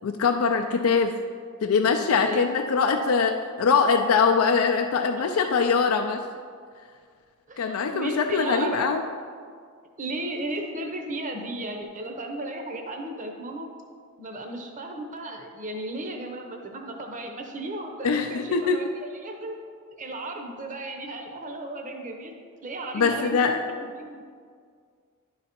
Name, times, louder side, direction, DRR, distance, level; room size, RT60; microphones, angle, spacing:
voice 1, 0.0-1.2 1.6-6.2 7.6-9.0 18.0-18.8 22.9-23.6, left 5 dB, 75° left, 4 dB, 0.4 m, -22 dB
voice 2, 1.9-2.5 7.5-8.9 10.0-13.7 14.2-19.6 19.9-22.3 22.6-24.3, right 2 dB, 35° right, 3 dB, 0.7 m, -35 dB
10.5 x 4.0 x 4.3 m, 2.1 s
head